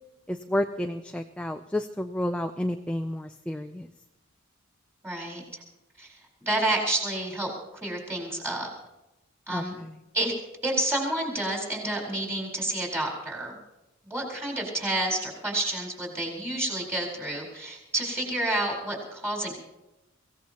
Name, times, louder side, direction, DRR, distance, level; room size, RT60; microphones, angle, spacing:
voice 1, 0.3-3.9 9.5-10.0, left 1 dB, 5° left, 6 dB, 0.4 m, -31 dB
voice 2, 5.0-5.6 6.0-7.5 7.8-8.7 9.5-9.8 10.1-10.3 10.6-13.5 14.0-19.5, right 1 dB, 10° right, -2 dB, 4.2 m, -29 dB
24.0 x 16.5 x 3.0 m, 0.96 s
head